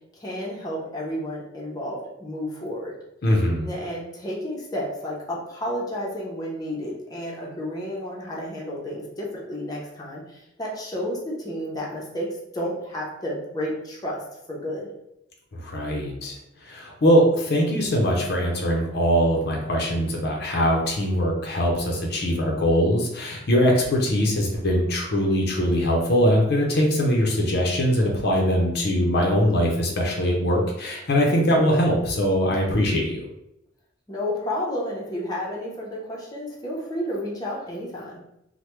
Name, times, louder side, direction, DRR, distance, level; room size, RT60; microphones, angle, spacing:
voice 1, 0.1-2.9 3.6-14.2 14.5-14.9 34.1-38.2, equal, 20° left, -4 dB, 0.6 m, -31 dB
voice 2, 3.2-3.7 15.5-16.4 16.6-33.3, equal, 60° left, 0 dB, 0.6 m, -22 dB
3.2 x 2.1 x 3.0 m, 0.84 s
head